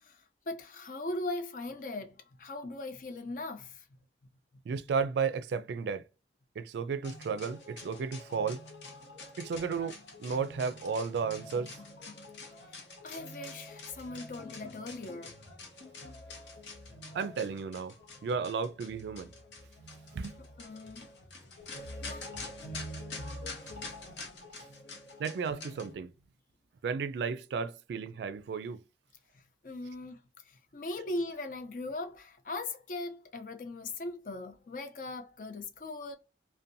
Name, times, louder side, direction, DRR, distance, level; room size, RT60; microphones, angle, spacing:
voice 1, 0.0-3.8 13.0-15.4 20.4-21.1 22.0-22.3 29.6-36.1, left 2 dB, 50° left, 0.4 m, -39 dB
voice 2, 4.7-6.0 6.6-8.6 9.4-11.7 17.1-17.9 18.2-19.3 20.1-20.4 25.2-26.1 26.8-28.8, right 5 dB, 75° right, 0.3 m, -33 dB
sound 1, 7.0-25.9, left 2 dB, 85° left, 0.7 m, -46 dB
2.6 x 2.2 x 2.5 m
head